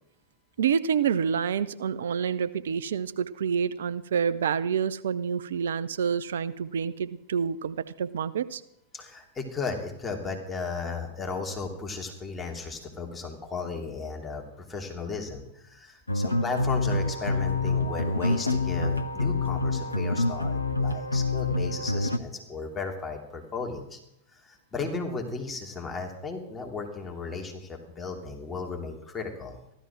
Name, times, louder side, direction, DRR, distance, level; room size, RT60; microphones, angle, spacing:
voice 1, 0.6-8.6, right 7 dB, 65° right, 14 dB, 0.7 m, -28 dB
voice 2, 8.9-24.0 24.3-29.6, left 4 dB, 15° left, 1 dB, 2.8 m, -35 dB
sound 1, 16.1-22.2, left 2 dB, 85° left, 0.7 m, -27 dB
15.0 x 12.5 x 6.0 m, 0.79 s
figure-of-eight pair, 90°, 0 cm